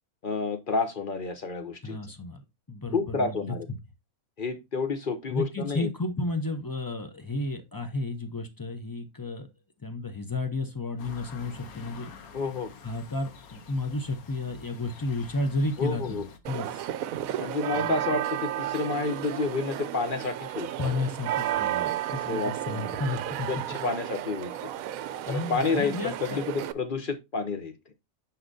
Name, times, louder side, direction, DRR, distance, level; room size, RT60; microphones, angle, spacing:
voice 1, 0.2-2.0 2.9-3.7 4.4-5.9 12.3-12.7 15.8-16.2 17.4-20.7 22.1-22.9 23.5-24.7 25.3-27.8, left 4 dB, 45° left, 0.7 m, -30 dB
voice 2, 1.8-2.4 2.7-3.6 5.3-9.5 9.8-12.1 12.8-16.2 16.5-16.9 17.7-18.0 20.8-23.5 25.2-26.4, left 2 dB, 30° left, 0.4 m, -32 dB
sound 1, 11.0-16.4, left 5 dB, 75° left, 1.3 m, -48 dB
sound 2, 16.5-26.7, right 12 dB, 75° right, 0.9 m, -33 dB
9.6 x 4.3 x 2.6 m
omnidirectional pair, 1.5 m